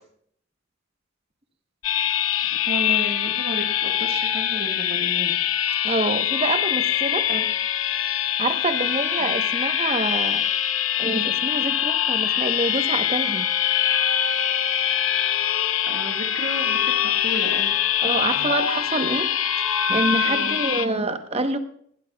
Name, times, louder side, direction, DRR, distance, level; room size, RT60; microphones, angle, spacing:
sound 1, 1.8-20.9, left 10 dB, 85° left, 0.8 m, -23 dB
voice 1, 2.4-5.3 7.3-7.5 9.2-9.4 15.8-17.8 20.2-20.6, right 1 dB, 50° right, 2 dB, 1.6 m, -33 dB
voice 2, 5.8-7.3 8.4-10.4 11.0-13.5 18.0-19.3 19.7-21.6, right 2 dB, 30° right, 8 dB, 1.0 m, -26 dB
19.0 x 15.5 x 2.3 m, 0.66 s
head